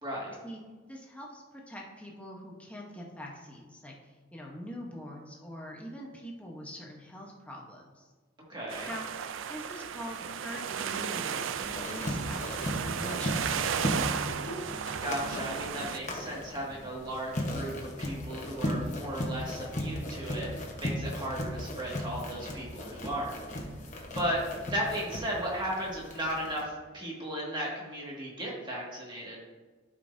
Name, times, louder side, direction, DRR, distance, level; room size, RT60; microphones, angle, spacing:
voice 1, 0.0-0.4 8.5-8.9 15.0-23.4 24.1-29.4, equal, 25° right, -4 dB, 1.9 m, -35 dB
voice 2, 0.9-3.9 4.3-8.1 8.9-9.0 9.5-14.5, equal, 5° left, -2 dB, 1.0 m, -44 dB
sound 1, 8.7-16.0, right 7 dB, 85° right, 0.4 m, -34 dB
sound 2, 11.6-26.6, left 1 dB, 40° left, 1.1 m, -37 dB
12.0 x 5.3 x 2.7 m, 1.3 s
head